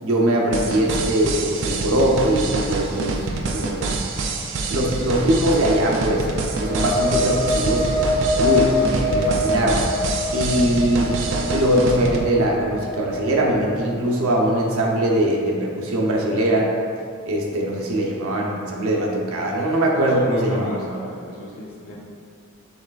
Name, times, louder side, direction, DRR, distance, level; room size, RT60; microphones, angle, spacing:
voice 1, 0.0-4.0 4.7-6.3 6.6-7.9 8.4-9.9 10.3-11.2 11.5-16.7 17.3-20.8, right 1 dB, 80° right, -1 dB, 0.7 m, -21 dB
sound 1, 0.5-12.2, right 3 dB, 55° right, 0.4 m, -26 dB
sound 2, 6.4-14.0, left 2 dB, 25° right, 1.5 m, -25 dB
voice 2, 19.9-22.0, equal, 80° left, -4 dB, 0.9 m, -33 dB
5.8 x 3.2 x 2.3 m, 2.2 s
head